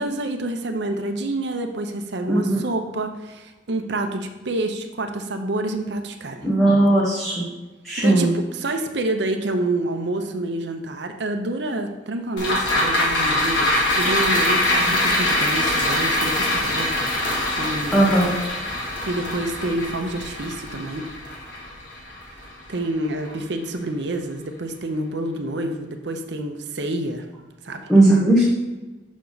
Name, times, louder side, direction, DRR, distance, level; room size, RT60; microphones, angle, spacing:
voice 1, 0.0-6.5 8.0-17.1 17.6-18.0 19.1-21.1 22.7-27.3 27.6-27.8, right 2 dB, 65° right, 6 dB, 0.7 m, -28 dB
voice 2, 2.3-2.6 6.4-7.4 7.8-8.3 17.9-18.3 27.9-28.4, right 1 dB, ahead, -6 dB, 1.0 m, -17 dB
sound 1, 12.4-22.9 23.2-23.3, left 1 dB, 80° left, 1.8 m, -23 dB
6.2 x 5.8 x 4.0 m, 1.2 s
head